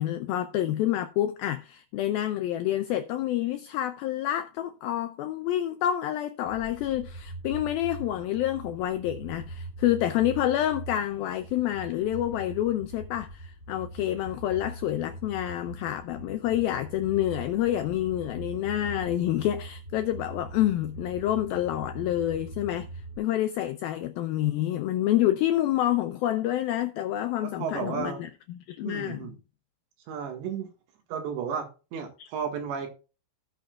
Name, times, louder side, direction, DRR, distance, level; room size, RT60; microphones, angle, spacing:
voice 1, 0.0-29.3 32.2-32.3, left 12 dB, 85° left, 2.1 m, -28 dB
sound 1, 6.4-23.2, right 2 dB, 25° right, 1.3 m, -42 dB
voice 2, 27.4-28.2 28.8-29.4 30.1-30.7 31.1-32.9, right 7 dB, 80° right, 3.9 m, -33 dB
17.0 x 6.2 x 2.4 m
omnidirectional pair, 5.0 m